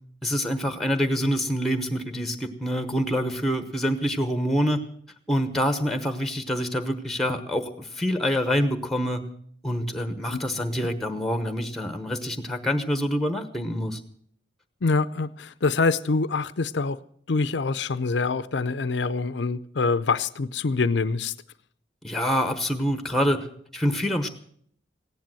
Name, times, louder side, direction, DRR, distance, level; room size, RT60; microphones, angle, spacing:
voice 1, 0.2-4.8 5.3-9.3 9.6-14.0 22.0-23.5 23.7-24.3, equal, ahead, 10 dB, 1.0 m, -26 dB
voice 2, 14.8-17.0 17.3-21.3, left 4 dB, 70° left, 15 dB, 0.6 m, -25 dB
16.0 x 10.5 x 7.6 m, 0.63 s
head